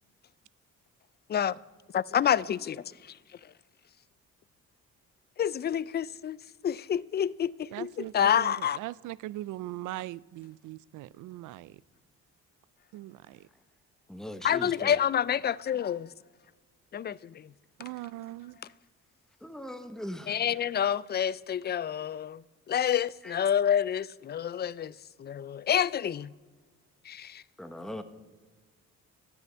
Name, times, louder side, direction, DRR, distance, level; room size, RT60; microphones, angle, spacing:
voice 1, 1.9-2.8 5.4-6.4 6.6-8.8 14.4-16.1 16.9-17.5 20.3-24.9 25.2-26.3 27.1-27.4, left 9 dB, 35° left, 0.4 m, -28 dB
voice 2, 7.7-11.8 12.9-13.4 17.8-18.6, right 16 dB, 80° right, 0.5 m, -40 dB
voice 3, 14.1-14.9 19.4-20.4 23.2-23.3 27.6-28.0, left 1 dB, ahead, 1.1 m, -40 dB
13.0 x 6.6 x 8.8 m
cardioid pair, 90°, 30 cm